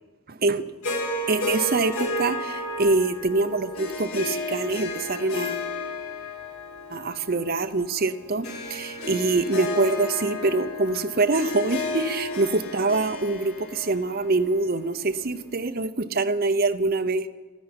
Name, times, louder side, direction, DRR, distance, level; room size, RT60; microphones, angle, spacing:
voice 1, 0.3-0.6 1.3-5.7 6.9-17.3, right 3 dB, 45° right, 9 dB, 0.8 m, -25 dB
Harp, 0.8-15.2, left 2 dB, 85° left, 2.6 m, -33 dB
13.0 x 10.5 x 9.6 m, 1.3 s
head